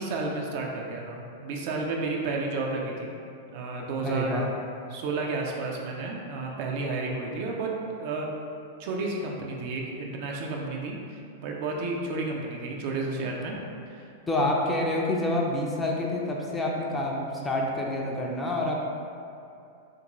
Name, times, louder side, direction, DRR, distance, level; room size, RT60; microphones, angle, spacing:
voice 1, 0.0-3.1 3.5-4.5 4.9-8.3 8.8-13.6 13.9-14.5, right 3 dB, 50° right, 0 dB, 0.4 m, -32 dB
voice 2, 4.0-4.5 14.3-18.8, left 1 dB, 10° left, -2 dB, 0.5 m, -27 dB
3.5 x 2.5 x 2.9 m, 2.6 s
figure-of-eight pair, 100°, 0 cm